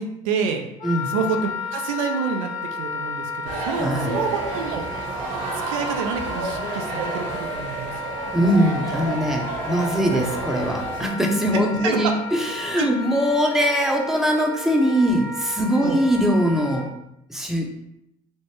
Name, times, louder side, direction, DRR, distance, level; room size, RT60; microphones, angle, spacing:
voice 1, 0.0-0.7 1.1-2.5 2.8-4.8 5.7-7.9 10.1-10.2 11.5-12.2 12.5-12.9 15.7-16.0, right 5 dB, 80° right, 5 dB, 0.4 m, -28 dB
Wind instrument woodwind instrument, 0.8-16.9, left 2 dB, 50° left, 1.0 m, -33 dB
sound 1, 3.4-11.1, right 2 dB, 55° right, 0.9 m, -30 dB
voice 2, 3.8-4.2 8.3-16.9 17.3-17.7, equal, ahead, 1 dB, 0.6 m, -21 dB
3.1 x 2.0 x 3.3 m, 0.82 s
hypercardioid pair, 65°, 17 cm